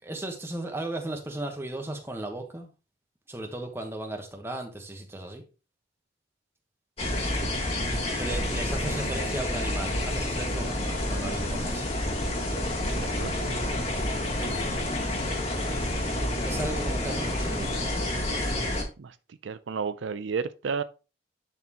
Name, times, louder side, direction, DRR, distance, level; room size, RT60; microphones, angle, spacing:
voice 1, 0.0-2.7 3.3-5.4 8.2-11.9 14.3-14.5 16.4-17.8, right 1 dB, 15° right, 1.1 m, -35 dB
sound 1, 7.0-18.8, left 1 dB, 30° left, 1.7 m, -29 dB
voice 2, 8.8-9.2 12.9-13.4 19.0-19.2 19.4-20.8, right 5 dB, 75° right, 0.4 m, -33 dB
10.5 x 4.3 x 2.9 m
head